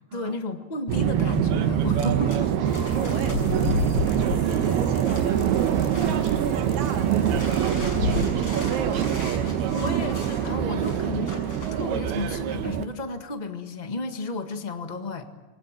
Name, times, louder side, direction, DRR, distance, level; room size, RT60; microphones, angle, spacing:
voice 1, 0.1-2.7 9.7-11.4 11.8-15.2, left 2 dB, 50° left, 6 dB, 0.5 m, -32 dB
Subway metro underground, 0.9-12.8, right 10 dB, 90° right, 3.2 m, -24 dB
sound 1, 1.9-6.4 6.8-11.9, left 2 dB, 35° left, 7.0 m, -42 dB
voice 2, 2.6-5.4 5.7-9.3, right 6 dB, 55° right, 5 dB, 3.3 m, -35 dB
sound 2, 2.7-8.3, left 8 dB, 90° left, 3.1 m, -32 dB
28.0 x 24.5 x 7.6 m, 1.2 s
omnidirectional pair, 4.3 m